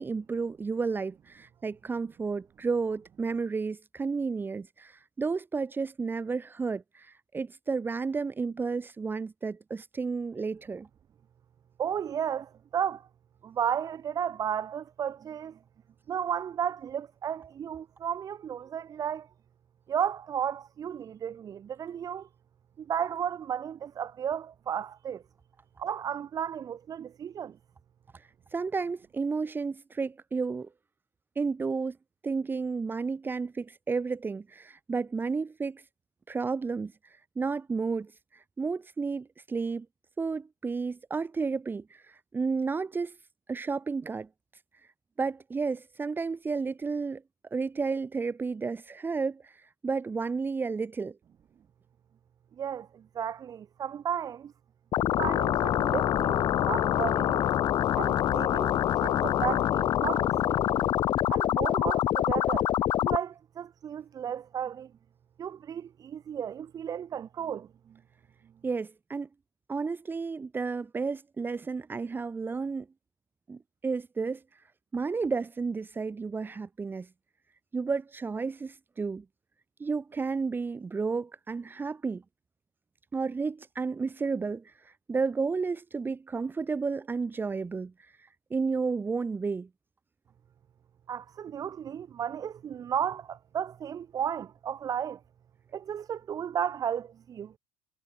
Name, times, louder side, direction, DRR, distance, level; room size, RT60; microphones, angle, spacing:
voice 1, 0.0-10.9 28.1-30.7 31.4-32.0 32.2-35.8 36.3-39.9 40.2-43.2 43.5-44.3 45.2-47.2 47.5-51.2 68.6-69.3 69.7-72.9 73.5-74.6 74.9-77.1 77.7-79.2 79.8-82.2 83.1-89.7, right 4 dB, 20° right, 1.9 m, -32 dB
voice 2, 11.8-13.1 13.4-15.6 16.1-19.3 19.9-22.3 22.8-25.2 25.8-27.6 52.6-54.5 55.2-57.5 57.9-60.9 61.3-62.7 63.0-64.9 65.4-68.0 91.1-95.2 95.7-97.5, right 8 dB, 35° right, 1.9 m, -34 dB
sound 1, 54.9-63.2, left 12 dB, 45° left, 1.3 m, -26 dB
supercardioid pair, 105°, 11 cm